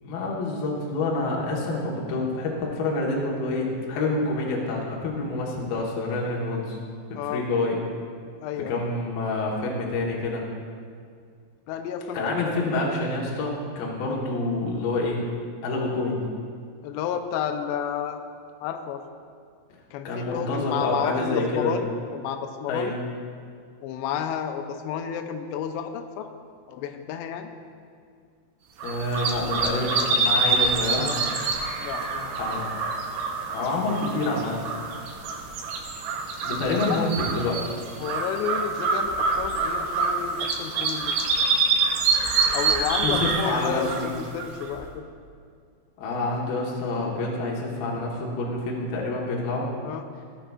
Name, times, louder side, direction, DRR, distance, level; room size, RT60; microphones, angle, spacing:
voice 1, 0.0-6.8 7.2-7.8 8.7-10.4 12.1-15.2 15.6-16.2 20.0-21.7 22.7-22.9 28.8-31.1 32.4-32.7 33.5-34.7 36.4-37.7 43.0-44.1 46.0-49.7, left 2 dB, 70° left, -4 dB, 2.4 m, -27 dB
voice 2, 7.1-7.5 8.4-8.8 11.7-12.4 16.8-18.2 18.6-19.0 19.9-22.9 23.8-26.3 26.7-27.5 31.8-32.4 36.7-37.0 38.0-41.2 42.5-45.1 49.8-50.0, left 8 dB, 85° left, 5 dB, 2.4 m, -31 dB
sound 1, 28.8-44.8, right 4 dB, 80° right, 2.5 m, -26 dB
16.5 x 8.5 x 2.3 m, 2.1 s
omnidirectional pair, 5.6 m